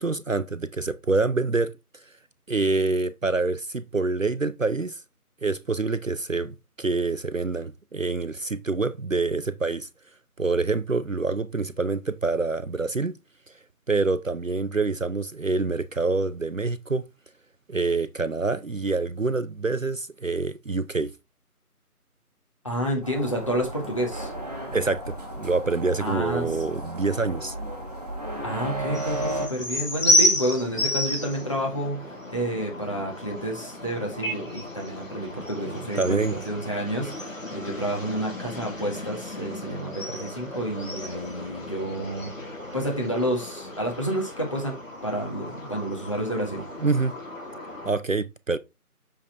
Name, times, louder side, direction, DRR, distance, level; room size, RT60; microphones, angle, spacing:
voice 1, 0.0-1.7 2.5-5.0 5.4-9.9 10.4-13.1 13.9-17.0 17.7-21.1 24.7-27.5 36.0-36.4 46.8-47.1 47.8-48.6, right 3 dB, 55° right, 0.7 m, -26 dB
voice 2, 22.6-24.3 26.0-26.5 28.4-42.3 42.7-46.6, equal, 20° left, 1.9 m, -30 dB
sound 1, 23.0-29.5, right 1 dB, 25° right, 1.8 m, -34 dB
sound 2, 28.9-47.9, left 1 dB, 55° left, 3.1 m, -31 dB
7.1 x 5.4 x 4.2 m
figure-of-eight pair, 170°, 46 cm